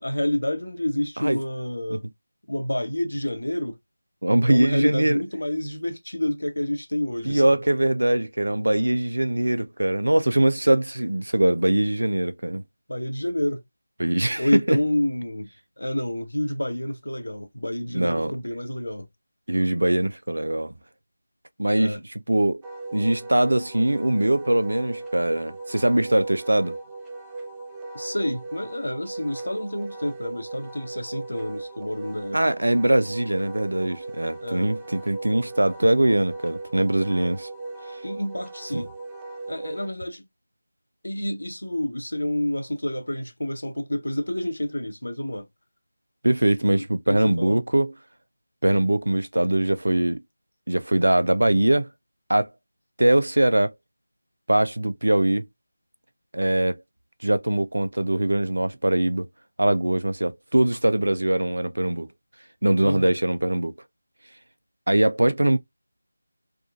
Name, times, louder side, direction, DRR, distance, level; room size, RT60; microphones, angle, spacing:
voice 1, 0.0-2.0 2.5-3.8 4.5-7.5 12.9-13.6 14.4-15.5 15.8-19.1 21.8-22.0 27.9-32.4 34.4-34.7 38.0-38.9 39.5-40.3 41.0-45.5 47.1-47.6 62.8-63.1, left 1 dB, 75° left, 1.0 m, -28 dB
voice 2, 4.2-5.2 7.3-12.6 14.0-14.8 17.9-18.3 19.5-20.8 21.6-22.0 22.3-22.6 22.9-26.8 32.3-37.5 38.7-38.8 46.2-47.9 48.6-50.2 50.7-51.9 52.3-52.5 53.0-53.7 54.5-55.4 56.3-56.8 57.2-59.3 59.6-62.1 62.6-63.7 64.9-65.6, right 1 dB, 75° right, 0.4 m, -22 dB
Wind instrument woodwind instrument, 22.6-39.9, right 3 dB, 10° right, 0.4 m, -38 dB
3.6 x 2.4 x 2.4 m
figure-of-eight pair, 165°, 0 cm